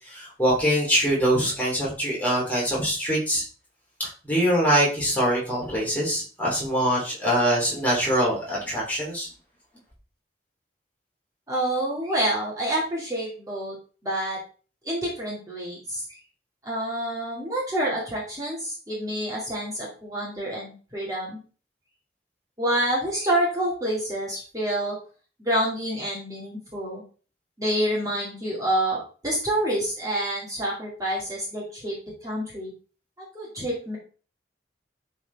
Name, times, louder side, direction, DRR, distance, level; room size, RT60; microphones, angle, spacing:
voice 1, 0.1-3.4 4.0-9.3, equal, 10° left, -5 dB, 3.3 m, -23 dB
voice 2, 11.5-13.7 14.0-14.4 14.8-16.2 16.6-21.4 22.6-25.0 25.4-27.0 27.6-31.9 32.2-32.7 33.3-34.0, right 1 dB, 20° right, -5 dB, 2.4 m, -28 dB
11.5 x 4.4 x 3.5 m, 0.38 s
head